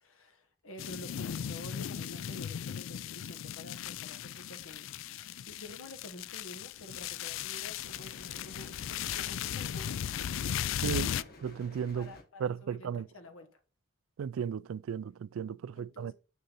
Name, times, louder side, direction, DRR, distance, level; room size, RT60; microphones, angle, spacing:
voice 1, 0.0-11.3 11.9-13.6 15.7-16.1, left 1 dB, 85° left, 1.5 m, -50 dB
sound 1, 0.8-11.2, left 9 dB, 70° left, 0.3 m, -37 dB
sound 2, 7.8-12.2, left 2 dB, 45° left, 1.5 m, -53 dB
voice 2, 11.4-12.1 12.4-13.1 14.2-16.1, right 7 dB, 75° right, 0.3 m, -35 dB
7.8 x 6.6 x 4.1 m
head